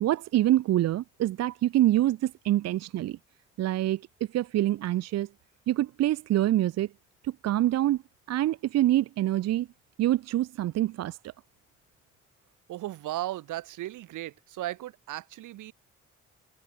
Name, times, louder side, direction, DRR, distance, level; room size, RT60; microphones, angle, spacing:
voice 1, 0.0-3.2 3.6-4.0 4.3-5.3 5.7-6.9 7.2-8.0 8.3-9.7 10.0-11.2, right 14 dB, 60° right, 0.5 m, -25 dB
voice 2, 12.7-15.7, right 15 dB, 80° right, 1.9 m, -36 dB
cardioid pair, 90°, 30 cm